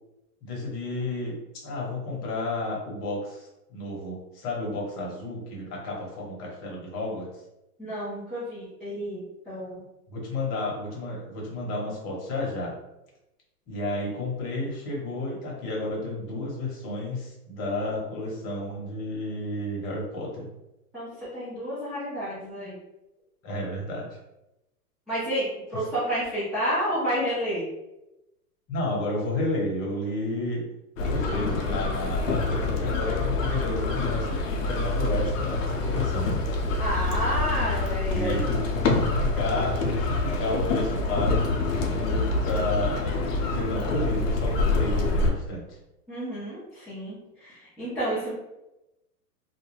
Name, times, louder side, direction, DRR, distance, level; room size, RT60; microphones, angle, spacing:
voice 1, 0.4-7.3 10.1-12.7 13.7-20.5 23.4-24.1 28.7-30.7 31.0-36.3 38.1-41.6 41.9-43.0 43.5-45.8, left 2 dB, 35° left, -2 dB, 0.9 m, -31 dB
voice 2, 7.8-9.8 20.9-22.7 25.1-27.6 36.8-38.5 46.1-48.3, equal, ahead, -15 dB, 0.3 m, -30 dB
sound 1, 31.0-45.3, left 3 dB, 55° left, 0.6 m, -26 dB
2.3 x 2.1 x 3.2 m, 0.93 s
hypercardioid pair, 125°, 46 cm